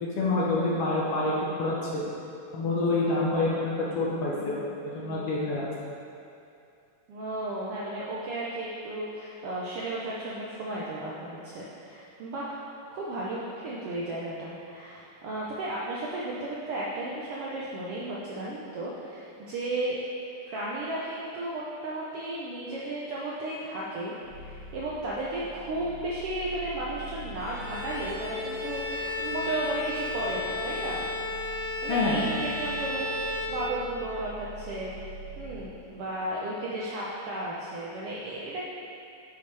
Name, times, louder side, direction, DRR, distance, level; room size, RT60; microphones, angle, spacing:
voice 1, 0.0-2.0 2.5-4.6 4.9-5.6 31.9-32.2, left 2 dB, 65° left, -6 dB, 1.7 m, -27 dB
voice 2, 4.4-4.7 7.1-12.6 12.9-20.0 20.5-31.0 31.8-33.1 33.4-38.7, right 1 dB, 75° right, -6 dB, 1.3 m, -34 dB
sound 1, 24.2-35.6, right 1 dB, 45° right, 2.6 m, -44 dB
Bowed string instrument, 27.3-34.1, left 2 dB, 40° left, 1.6 m, -33 dB
9.1 x 6.0 x 3.3 m, 2.5 s
omnidirectional pair, 3.4 m